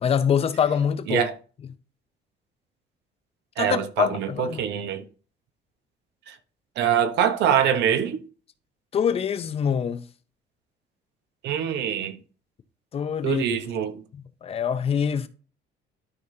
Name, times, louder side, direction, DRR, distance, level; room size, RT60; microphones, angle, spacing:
voice 1, 0.0-1.2 3.6-4.6 8.9-10.0 12.9-13.4 14.1-15.3, left 7 dB, 35° left, 0.7 m, -25 dB
voice 2, 3.6-5.0 6.3-6.4 6.8-8.2 11.4-12.1 13.2-14.0, right 9 dB, 80° right, 1.2 m, -24 dB
12.5 x 5.1 x 2.8 m
cardioid pair, 155°, 18 cm